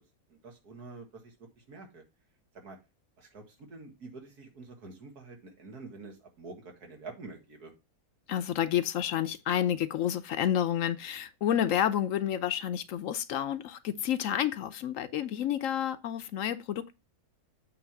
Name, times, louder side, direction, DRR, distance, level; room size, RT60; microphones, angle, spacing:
voice 1, 0.3-2.0 2.5-2.8 3.2-7.7, right 3 dB, 85° right, 2.3 m, -47 dB
voice 2, 8.3-16.9, left 10 dB, 65° left, 0.9 m, -30 dB
8.1 x 3.3 x 5.9 m
omnidirectional pair, 1.6 m